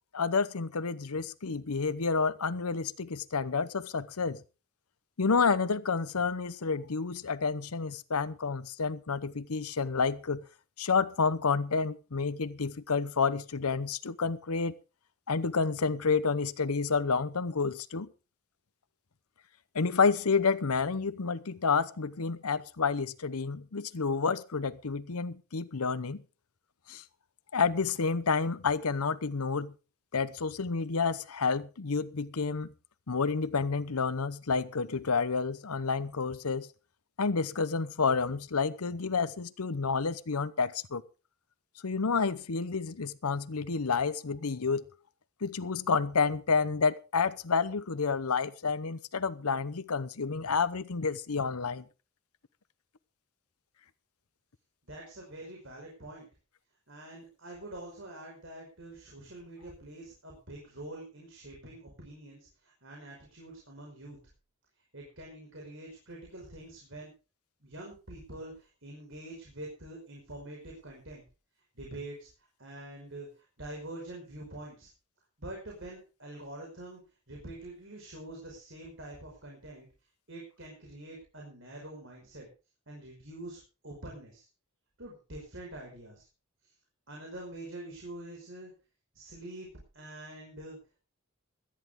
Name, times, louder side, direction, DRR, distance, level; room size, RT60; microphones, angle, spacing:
voice 1, 0.1-4.4 5.2-10.4 10.8-14.7 15.3-18.1 19.7-26.2 26.9-27.0 27.5-29.7 30.1-32.7 33.1-36.7 37.2-41.0 41.8-44.8 45.4-51.8, left 5 dB, 80° left, 0.8 m, -29 dB
voice 2, 54.9-56.3 56.9-64.2 64.9-67.1 67.6-71.2 71.8-74.9 75.4-77.0 77.3-79.9 80.3-82.5 82.9-84.5 85.0-86.3 87.1-88.7 89.1-89.7 89.9-90.8, right 1 dB, 55° right, 5.4 m, -45 dB
17.5 x 13.5 x 3.7 m
head